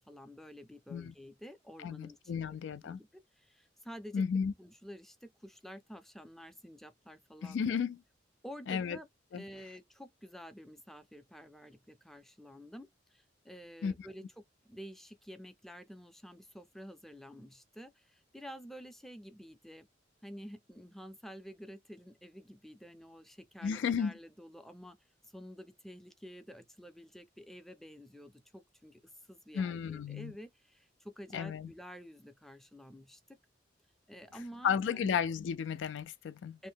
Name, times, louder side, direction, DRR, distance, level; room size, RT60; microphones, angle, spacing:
voice 1, 0.1-4.2 4.6-7.8 8.4-9.1 9.3-19.9 20.2-25.0 25.2-29.0 29.3-33.4 34.1-35.2 36.6-36.7, equal, ahead, 0.4 m, -50 dB
voice 2, 1.8-3.0 4.1-4.5 7.4-8.0 8.7-9.0 9.3-9.4 13.8-14.1 23.6-24.1 29.5-30.3 31.3-31.7 34.6-36.6, left 7 dB, 70° left, 0.3 m, -33 dB
2.7 x 2.1 x 3.4 m
head